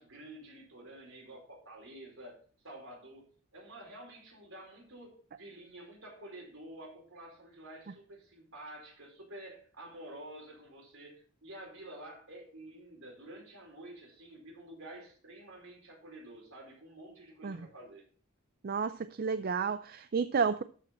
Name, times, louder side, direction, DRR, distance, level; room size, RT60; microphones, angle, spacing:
voice 1, 0.0-2.4 2.6-3.3 3.5-18.0, right 1 dB, 65° right, 4.8 m, -49 dB
voice 2, 18.6-20.6, right 5 dB, 45° right, 0.4 m, -31 dB
13.0 x 6.5 x 4.2 m
head